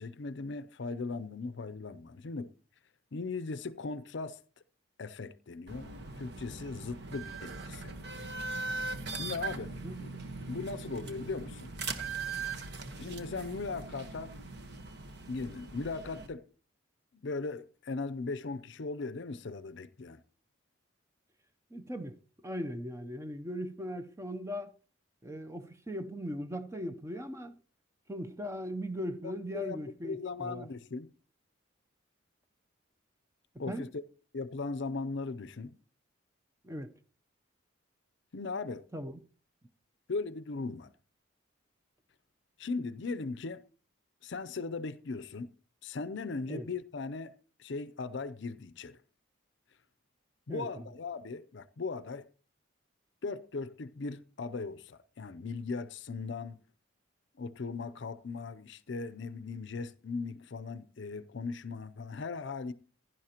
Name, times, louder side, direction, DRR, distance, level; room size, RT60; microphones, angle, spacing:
voice 1, 0.0-2.5 3.1-4.4 5.0-5.9 6.2-7.9 9.1-9.7 10.0-10.2 10.5-11.7 13.0-14.3 15.3-16.4 17.1-20.2 29.2-29.8 30.0-31.1 33.6-34.0 34.3-35.7 38.3-38.9 40.1-40.9 42.6-43.6 44.2-45.5 45.8-49.0 50.5-52.3 53.2-56.6 57.4-62.7, left 4 dB, 60° left, 0.5 m, -38 dB
sound 1, 5.7-16.3, right 3 dB, 50° right, 1.2 m, -40 dB
voice 2, 21.7-22.2 22.4-24.7 25.2-27.6 28.1-30.7 33.7-33.9 36.6-36.9 38.9-39.1 46.5-46.7 50.5-50.9, equal, 15° right, 0.6 m, -39 dB
15.5 x 11.0 x 2.9 m
head